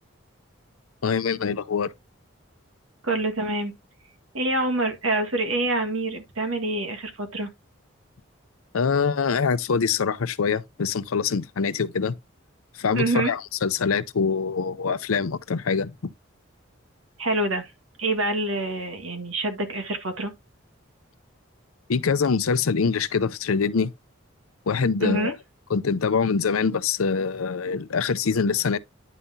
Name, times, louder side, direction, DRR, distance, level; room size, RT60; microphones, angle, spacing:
voice 1, 1.0-1.9 8.7-12.1 12.8-16.1 21.9-23.9 24.7-25.4 25.7-28.8, left 5 dB, 90° left, 0.6 m, -24 dB
voice 2, 3.0-3.7 4.3-7.5 12.9-13.3 17.2-17.7 18.0-20.3 25.0-25.3, right 2 dB, 80° right, 1.8 m, -26 dB
10.0 x 5.5 x 2.8 m
head